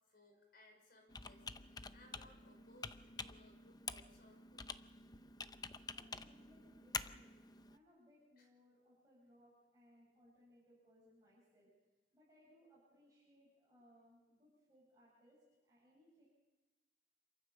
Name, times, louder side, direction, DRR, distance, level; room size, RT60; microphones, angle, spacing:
voice 1, 0.1-4.7 8.4-8.5, left 1 dB, 60° left, 3 dB, 5.6 m, -65 dB
Computer keyboard, 1.1-7.8, left 5 dB, 25° left, 0.6 m, -48 dB
voice 2, 5.9-7.3 7.7-11.7 12.1-16.3, equal, 20° right, -8 dB, 7.9 m, -68 dB
27.0 x 15.0 x 7.1 m, 1.1 s
head